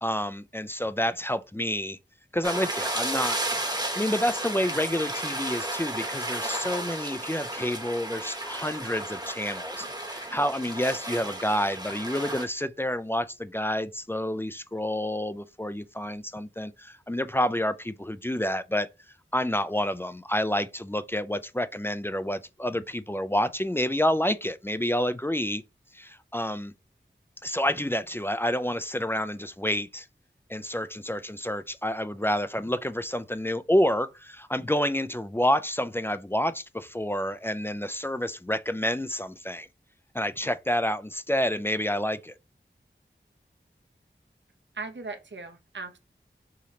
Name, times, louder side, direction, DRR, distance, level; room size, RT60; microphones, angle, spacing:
voice 1, 0.0-2.0 2.3-3.4 4.0-18.9 19.3-25.6 25.9-26.7 27.4-30.1 30.5-39.7 40.1-42.3, left 1 dB, 10° left, 0.3 m, -29 dB
sound 1, 2.4-12.5, right 1 dB, 20° right, 1.0 m, -33 dB
voice 2, 44.7-46.0, right 3 dB, 65° right, 0.7 m, -38 dB
4.9 x 2.9 x 2.8 m
wide cardioid pair, 55°, 20 cm